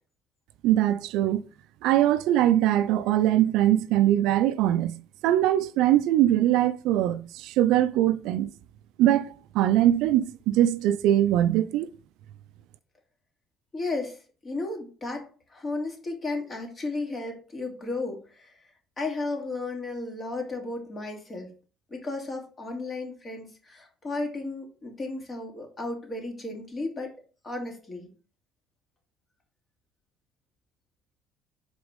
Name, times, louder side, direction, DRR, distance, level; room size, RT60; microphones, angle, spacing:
voice 1, 0.6-1.4 1.8-8.5 9.0-11.9, right 12 dB, 75° right, 0.4 m, -22 dB
voice 2, 13.7-18.6 19.0-21.5 21.9-27.1 27.4-28.1, left 2 dB, 30° left, 2.8 m, -34 dB
4.8 x 4.1 x 5.3 m
supercardioid pair, 80°, 0 cm